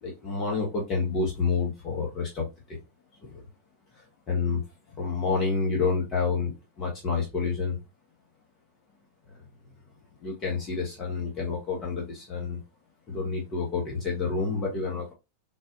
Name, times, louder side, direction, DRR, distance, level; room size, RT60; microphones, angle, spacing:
voice 1, 0.0-2.8 3.2-3.3 4.3-4.6 5.0-7.8 10.2-12.6 13.1-15.1, left 4 dB, 30° left, -3 dB, 1.2 m, -29 dB
3.9 x 2.5 x 2.5 m, 0.25 s
figure-of-eight pair, 90°, 0 cm